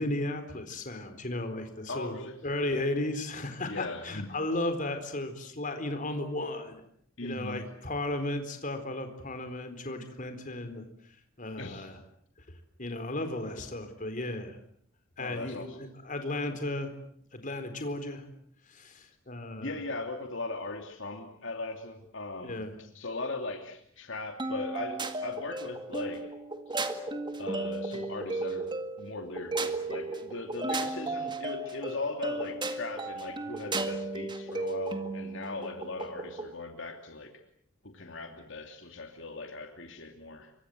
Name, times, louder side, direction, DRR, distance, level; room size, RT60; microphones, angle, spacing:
voice 1, 0.0-2.2 2.4-6.8 7.2-10.8 11.4-11.9 12.8-14.6 15.2-16.9 17.3-18.2 18.7-19.8 22.4-22.7, left 1 dB, 40° left, 8 dB, 4.2 m, -34 dB
voice 2, 1.9-2.4 3.7-4.3 7.2-7.6 11.6-11.9 15.2-15.8 19.6-26.3 26.7-26.8 27.4-37.4 37.8-40.5, left 3 dB, 65° left, 4 dB, 2.8 m, -39 dB
sound 1, 24.4-36.5, right 2 dB, 25° right, 2.0 m, -35 dB
28.0 x 24.5 x 7.9 m, 0.67 s
head